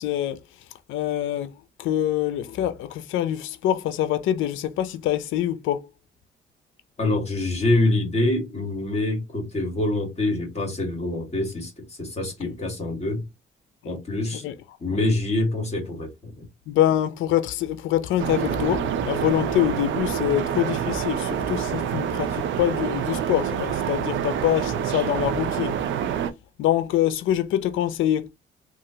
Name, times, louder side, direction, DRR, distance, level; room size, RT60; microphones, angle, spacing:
voice 1, 0.0-5.9 13.8-13.9 14.4-14.5 14.9-15.0 16.7-25.8 26.6-28.3, left 12 dB, 80° left, 0.5 m, -25 dB
voice 2, 7.0-13.3 13.8-14.4 14.8-16.5, left 2 dB, 30° left, 1.6 m, -25 dB
sound 1, 18.2-26.3, right 9 dB, 75° right, 0.6 m, -27 dB
3.0 x 2.4 x 2.7 m
cardioid pair, 90°, 20 cm